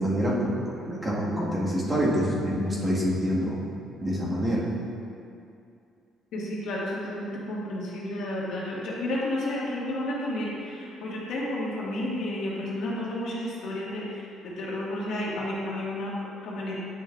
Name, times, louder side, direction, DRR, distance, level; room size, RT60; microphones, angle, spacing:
voice 1, 0.0-3.6 4.0-4.7, equal, 20° right, -7 dB, 1.4 m, -26 dB
voice 2, 6.3-16.8, left 1 dB, 70° left, -5 dB, 1.5 m, -31 dB
9.1 x 6.0 x 2.3 m, 2.5 s
cardioid pair, 135°, 0 cm